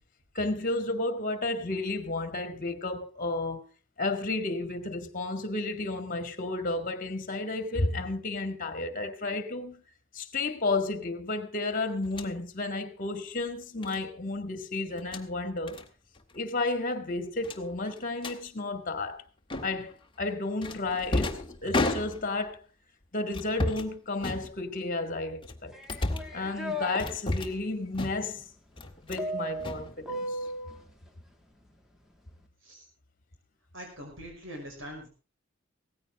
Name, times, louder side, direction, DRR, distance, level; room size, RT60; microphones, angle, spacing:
voice 1, 0.4-3.6 4.0-9.8 10.1-15.8 16.3-19.2 19.6-22.6 23.1-25.7 26.3-28.4 29.0-30.4, left 2 dB, 45° left, 2.1 m, -32 dB
sound 1, 12.0-12.3 13.8-14.0 14.9-15.3 15.7-15.9 16.1-16.4 16.6-16.7 17.4-18.4 19.5-19.9 20.6-22.5 23.3-23.9 24.2-24.9 25.4-26.4 27.0-27.6 27.9-28.4 28.8-29.3 29.6-30.4, left 2 dB, 25° left, 1.7 m, -33 dB
sound 2, 25.7-27.0 29.2-30.8, equal, ahead, 2.2 m, -35 dB
voice 2, 33.7-35.1, equal, 70° right, 5.5 m, -43 dB
17.5 x 15.0 x 3.7 m
head